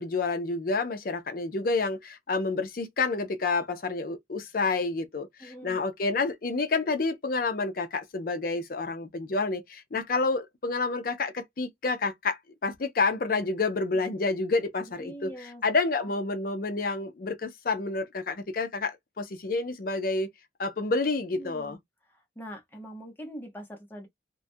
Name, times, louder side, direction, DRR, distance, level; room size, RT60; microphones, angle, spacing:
voice 1, 0.0-20.3 20.6-21.8, left 3 dB, 50° left, 0.5 m, -29 dB
voice 2, 5.4-5.8 15.0-15.6 16.0-16.1 21.3-21.8 22.1-24.1, equal, 10° left, 0.8 m, -43 dB
2.3 x 2.1 x 2.6 m
head